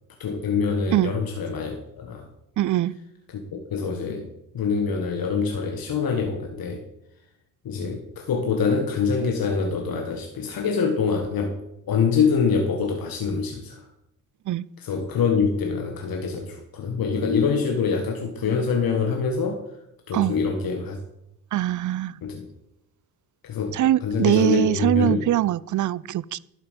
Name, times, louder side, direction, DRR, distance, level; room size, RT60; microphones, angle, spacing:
voice 1, 0.2-2.3 3.3-6.8 7.6-11.6 11.9-13.9 14.8-19.7 20.1-21.0 22.2-22.5 23.4-25.3, left 5 dB, 55° left, 1.6 m, -25 dB
voice 2, 2.6-3.0 14.5-14.7 20.1-20.3 21.5-22.2 23.7-26.4, right 13 dB, 45° right, 0.5 m, -22 dB
11.5 x 7.8 x 5.3 m
supercardioid pair, 55°, 41 cm